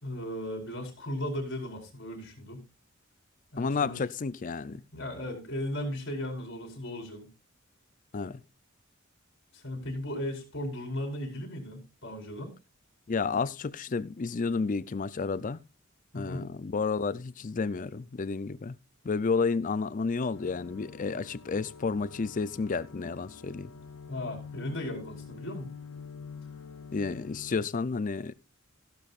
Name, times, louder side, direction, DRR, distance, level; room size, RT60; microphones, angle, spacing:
voice 1, 0.0-2.6 3.5-4.0 4.7-7.3 9.5-12.5 16.1-16.5 24.1-25.7, left 1 dB, 60° left, 4.8 m, -36 dB
voice 2, 3.6-4.8 8.1-8.4 13.1-15.6 16.1-18.8 19.0-23.7 26.9-28.3, left 4 dB, 40° left, 0.5 m, -31 dB
sound 1, 20.3-27.7, left 5 dB, 80° left, 0.8 m, -46 dB
15.5 x 12.0 x 2.5 m
head